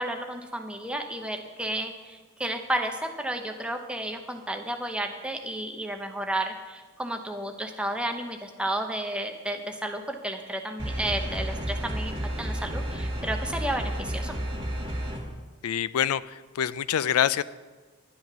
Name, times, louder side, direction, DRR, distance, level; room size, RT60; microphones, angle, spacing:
voice 1, 0.0-14.4, right 1 dB, 5° right, 4 dB, 0.7 m, -32 dB
sound 1, 10.8-15.2, equal, 25° right, 2.0 m, -31 dB
voice 2, 15.6-17.4, left 9 dB, 90° left, 17 dB, 0.4 m, -26 dB
10.5 x 9.4 x 6.0 m, 1.4 s
head